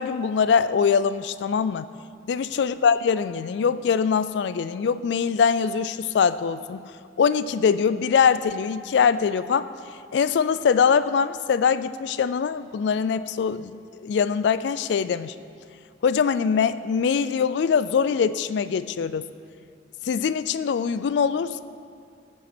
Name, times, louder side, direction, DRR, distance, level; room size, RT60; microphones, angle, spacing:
voice 1, 0.0-1.9 2.3-6.8 7.2-9.7 10.1-15.3 16.0-19.3 20.0-21.6, left 6 dB, 65° left, 14 dB, 0.3 m, -23 dB
16.5 x 5.6 x 4.3 m, 2.4 s
head